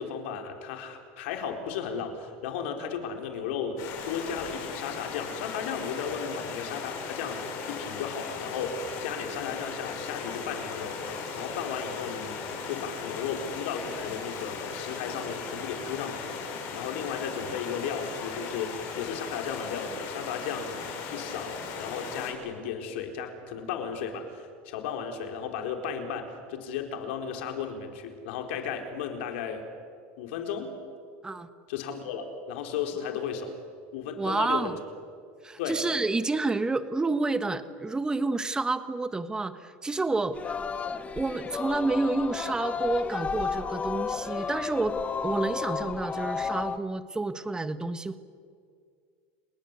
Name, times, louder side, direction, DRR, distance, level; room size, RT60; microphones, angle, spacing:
voice 1, 0.0-11.0 11.3-12.4 12.6-16.3 16.7-20.8 21.1-29.7 30.2-30.7 31.7-33.5 33.9-34.8 35.6-35.8, left 7 dB, 80° left, 4 dB, 4.1 m, -35 dB
Stream, 3.8-22.3, left 5 dB, 60° left, 7.5 m, -37 dB
voice 2, 34.2-34.8 35.4-40.6 41.1-45.0 45.2-48.2, right 3 dB, 10° right, 11 dB, 1.4 m, -29 dB
Singing, 40.3-46.8, left 5 dB, 20° left, 1.0 m, -32 dB
30.0 x 19.5 x 8.3 m, 2.2 s
supercardioid pair, 130°, 6 cm